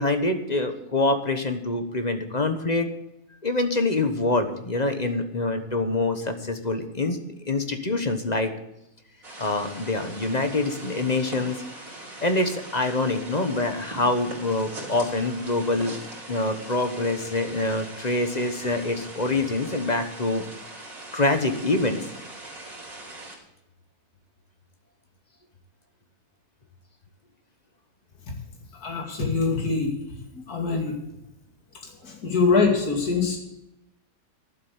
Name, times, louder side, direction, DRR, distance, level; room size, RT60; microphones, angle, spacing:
voice 1, 0.0-2.9 3.4-7.2 7.5-8.5 9.4-11.6 12.2-16.0 16.3-20.4 21.1-22.1, left 2 dB, 30° left, 7 dB, 1.1 m, -25 dB
sound 1, 9.2-23.4, right 2 dB, 60° right, 4.0 m, -41 dB
voice 2, 28.8-29.9 30.3-30.9 32.0-33.4, left 4 dB, 75° left, 1 dB, 2.9 m, -23 dB
12.0 x 7.6 x 8.5 m, 0.86 s
omnidirectional pair, 1.6 m